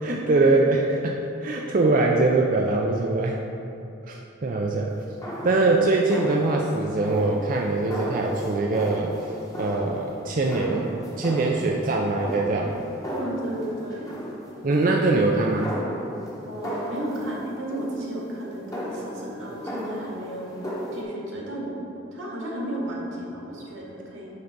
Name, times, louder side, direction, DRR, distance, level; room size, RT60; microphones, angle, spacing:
voice 1, 0.0-3.4 4.1-4.9 5.4-9.1 9.6-10.9 11.2-12.8 14.6-15.7, right 2 dB, 40° right, 0 dB, 0.4 m, -23 dB
sound 1, 4.9-21.0, equal, 15° left, 1.1 m, -36 dB
voice 2, 13.1-14.1 16.4-21.8 22.1-24.3, right 1 dB, 85° right, -4 dB, 1.9 m, -33 dB
8.6 x 3.9 x 6.0 m, 2.7 s
head